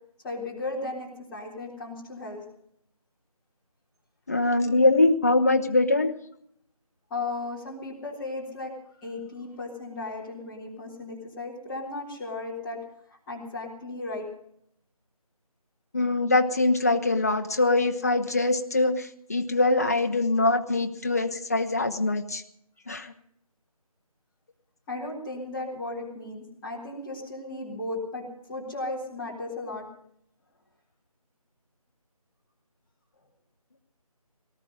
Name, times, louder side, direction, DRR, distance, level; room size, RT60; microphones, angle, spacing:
voice 1, 0.2-2.4 7.1-8.7 9.0-12.8 13.3-14.3 24.9-29.8, left 2 dB, 5° left, -5 dB, 1.6 m, -35 dB
voice 2, 4.3-6.1 15.9-22.4 22.9-23.1, left 2 dB, 25° left, 7 dB, 0.8 m, -23 dB
18.5 x 13.0 x 5.2 m, 0.71 s
figure-of-eight pair, 170°, 19 cm